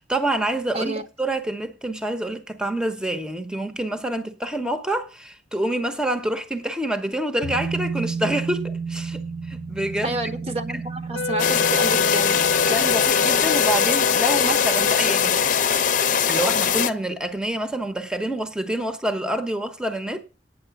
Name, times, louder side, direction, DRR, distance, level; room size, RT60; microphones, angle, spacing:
voice 1, 0.0-10.2 12.7-15.5 16.3-20.2, right 1 dB, 5° right, 0.9 m, -27 dB
sound 1, 7.4-16.5 16.8-16.9, right 5 dB, 70° right, 3.1 m, -33 dB
voice 2, 10.0-12.5, right 2 dB, 35° right, 1.0 m, -29 dB
Wind instrument woodwind instrument, 11.1-15.7, left 4 dB, 85° left, 0.6 m, -27 dB
sound 2, 11.4-16.9, left 7 dB, 45° left, 0.7 m, -21 dB
9.3 x 8.0 x 6.9 m
head